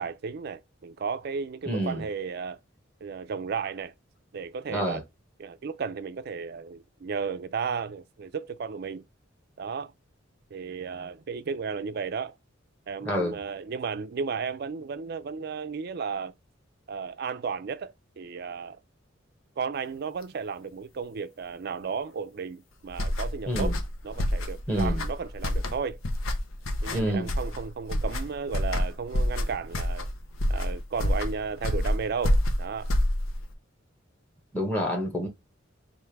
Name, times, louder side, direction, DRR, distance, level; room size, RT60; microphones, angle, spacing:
voice 1, 0.0-2.6 3.0-3.9 4.3-5.0 5.4-9.0 9.6-9.9 10.5-12.4 12.9-16.3 16.9-18.8 19.6-23.8 24.0-26.0 26.8-30.1 30.5-32.9, right 5 dB, 55° right, 0.4 m, -34 dB
voice 2, 1.6-2.1 4.7-5.0 13.0-13.4 23.5-23.8 24.7-25.0 26.9-27.3 34.5-35.3, equal, 10° left, 1.1 m, -28 dB
sound 1, 22.9-33.5, left 1 dB, 90° left, 0.7 m, -28 dB
3.4 x 2.6 x 4.5 m
head